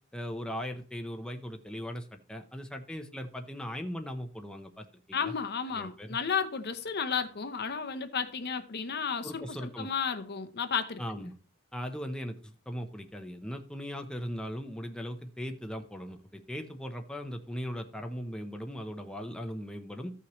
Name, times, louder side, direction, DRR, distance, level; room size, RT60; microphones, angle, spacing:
voice 1, 0.1-5.3 5.7-6.2 9.2-9.9 11.0-11.3 11.7-20.1, equal, 5° left, 0.7 m, -39 dB
voice 2, 5.1-11.2, left 6 dB, 50° left, 0.8 m, -33 dB
14.5 x 5.8 x 3.1 m
head